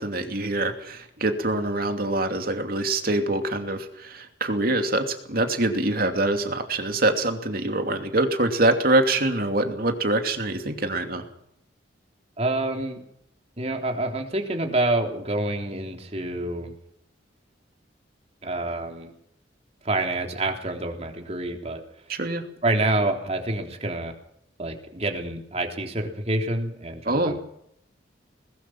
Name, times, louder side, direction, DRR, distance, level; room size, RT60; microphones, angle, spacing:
voice 1, 0.0-11.2 22.1-22.4 27.0-27.4, right 2 dB, 55° right, 5 dB, 2.8 m, -24 dB
voice 2, 12.4-13.0 13.6-16.7 18.4-19.1 19.8-21.8 22.6-24.1 24.6-27.4, right 2 dB, 35° right, 3 dB, 3.4 m, -27 dB
21.0 x 20.5 x 6.1 m, 0.72 s
head